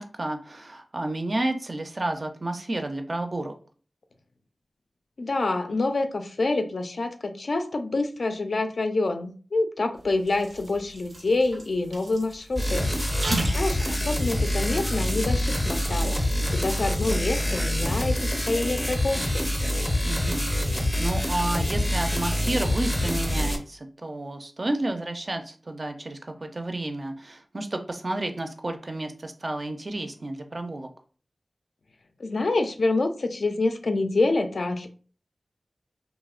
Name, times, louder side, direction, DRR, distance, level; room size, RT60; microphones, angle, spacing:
voice 1, 0.0-3.5 13.3-13.6 20.1-30.9, right 2 dB, 45° right, 5 dB, 0.3 m, -31 dB
voice 2, 5.2-12.9 13.5-16.3 16.5-19.5 32.2-34.9, left 2 dB, 70° left, 6 dB, 0.3 m, -27 dB
sound 1, 10.0-15.6, right 2 dB, 85° right, 0.6 m, -37 dB
sound 2, 12.6-23.6, left 1 dB, 15° left, 0.5 m, -26 dB
2.8 x 2.0 x 2.4 m, 0.40 s
wide cardioid pair, 85°, 0 cm